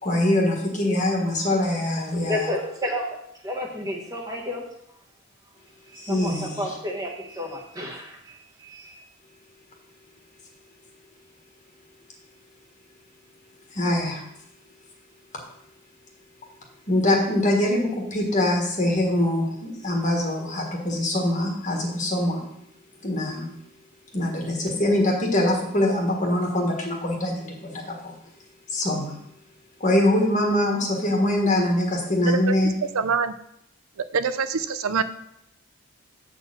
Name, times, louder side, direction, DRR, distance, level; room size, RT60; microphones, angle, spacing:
voice 1, 0.0-2.5 6.0-6.6 13.7-14.2 16.9-22.4 23.0-23.5 24.1-28.2 28.7-29.1 29.8-32.7, left 1 dB, 35° left, 0 dB, 1.4 m, -23 dB
voice 2, 2.3-3.1 3.4-4.6 5.9-9.0, left 1 dB, 15° right, 0 dB, 1.2 m, -31 dB
voice 3, 32.9-33.3 34.1-35.0, right 5 dB, 80° right, 12 dB, 0.5 m, -24 dB
8.0 x 4.3 x 6.5 m, 0.78 s
head